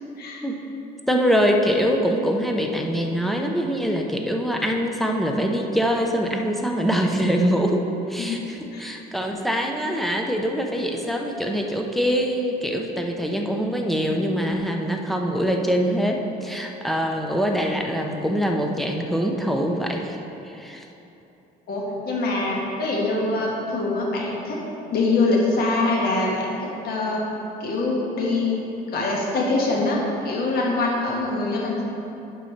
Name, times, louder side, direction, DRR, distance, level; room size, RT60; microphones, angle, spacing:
voice 1, 1.1-20.2 20.4-20.8, equal, ahead, 1 dB, 0.7 m, -24 dB
voice 2, 21.7-24.6 24.9-27.2 27.6-28.6 28.9-30.0 30.2-31.8, left 2 dB, 65° left, -3 dB, 1.6 m, -24 dB
11.0 x 5.3 x 3.2 m, 3.0 s
cardioid pair, 110°, 17 cm